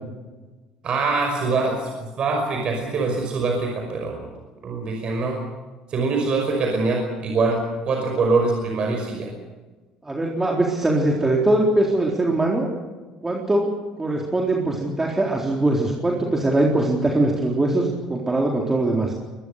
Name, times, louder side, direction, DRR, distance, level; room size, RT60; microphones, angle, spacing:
voice 1, 0.8-4.3 4.6-5.4 5.9-7.6 7.9-9.3, right 3 dB, 50° right, 2 dB, 5.6 m, -23 dB
voice 2, 10.0-12.7 13.2-13.7 14.0-19.1, right 2 dB, 20° right, -1 dB, 4.0 m, -21 dB
23.0 x 21.0 x 6.7 m, 1.3 s
hypercardioid pair, 65°, 2 cm